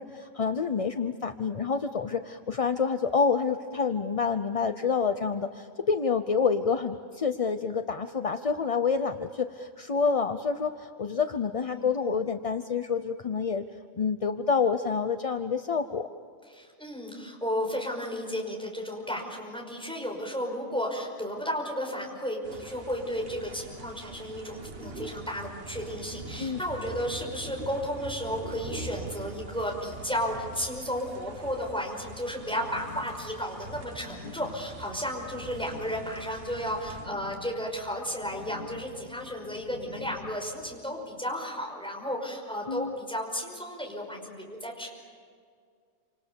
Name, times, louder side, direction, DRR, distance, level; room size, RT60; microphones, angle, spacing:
voice 1, 0.0-13.6 14.0-16.1 26.4-26.6 42.7-42.9, left 5 dB, 35° left, 8 dB, 0.6 m, -28 dB
voice 2, 11.6-12.2 16.5-44.9, equal, 5° left, 0 dB, 5.4 m, -33 dB
sound 1, 22.4-37.1, right 3 dB, 45° right, 1.5 m, -43 dB
sound 2, 32.2-40.8, left 5 dB, 75° left, 2.1 m, -47 dB
28.5 x 27.0 x 7.0 m, 2.1 s
omnidirectional pair, 1.4 m